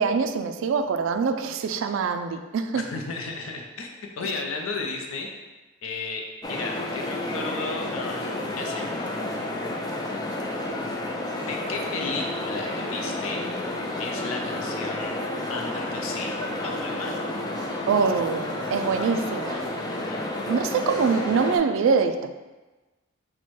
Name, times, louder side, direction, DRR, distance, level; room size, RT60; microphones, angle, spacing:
voice 1, 0.0-2.8 17.9-19.7 20.5-22.3, right 5 dB, 70° right, 8 dB, 0.3 m, -24 dB
voice 2, 2.7-3.9 4.2-5.3 5.8-8.9 11.4-13.5 14.0-15.2 15.5-17.2 20.1-20.3, left 3 dB, 85° left, 2 dB, 0.6 m, -34 dB
sound 1, 6.4-21.6, left 1 dB, 20° left, 0.3 m, -31 dB
4.2 x 2.2 x 4.6 m, 1.2 s
head